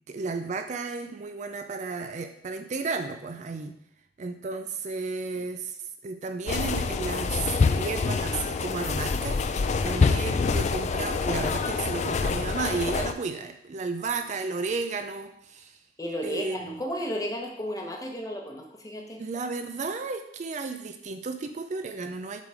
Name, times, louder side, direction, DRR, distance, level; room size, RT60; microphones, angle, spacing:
voice 1, 0.1-3.8 4.2-15.8 16.2-16.8 19.2-22.4, right 4 dB, 40° right, 8 dB, 0.4 m, -33 dB
sound 1, 6.5-13.1, left 4 dB, 40° left, 0.3 m, -26 dB
voice 2, 16.0-19.2, equal, 20° left, 2 dB, 0.9 m, -33 dB
7.4 x 3.7 x 4.8 m, 0.77 s
head